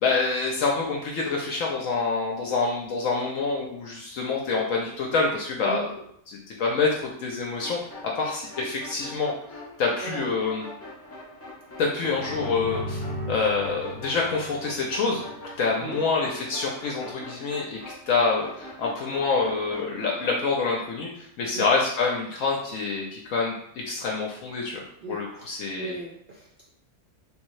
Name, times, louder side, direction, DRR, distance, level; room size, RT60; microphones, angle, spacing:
voice 1, 0.0-5.8 6.3-7.8 8.2-9.3 9.8-10.7 11.8-13.0 13.3-17.8 18.1-23.5 23.8-24.8 25.1-25.9, left 4 dB, 70° left, -2 dB, 0.9 m, -26 dB
sound 1, 7.6-20.4, left 2 dB, 25° left, 0.3 m, -43 dB
voice 2, 10.0-10.3 15.8-16.0 21.5-21.7 25.0-26.7, right 3 dB, 75° right, -3 dB, 0.4 m, -38 dB
sound 2, 11.9-15.6, equal, 35° right, 0.8 m, -37 dB
3.5 x 2.6 x 3.1 m, 0.71 s
omnidirectional pair, 1.5 m